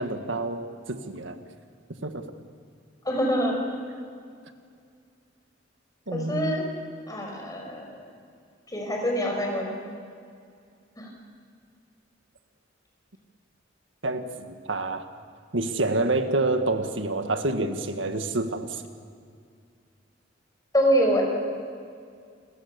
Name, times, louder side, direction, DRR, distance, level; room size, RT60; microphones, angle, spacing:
voice 1, 0.0-1.4 2.0-2.2 6.1-6.6 14.0-15.0 15.5-18.8, right 2 dB, 85° right, 7 dB, 1.9 m, -28 dB
voice 2, 3.1-3.6 6.1-6.6 7.1-8.1 8.7-9.7 11.0-11.1 20.7-21.2, equal, 20° left, 1 dB, 5.6 m, -25 dB
29.5 x 22.0 x 7.0 m, 2.3 s
head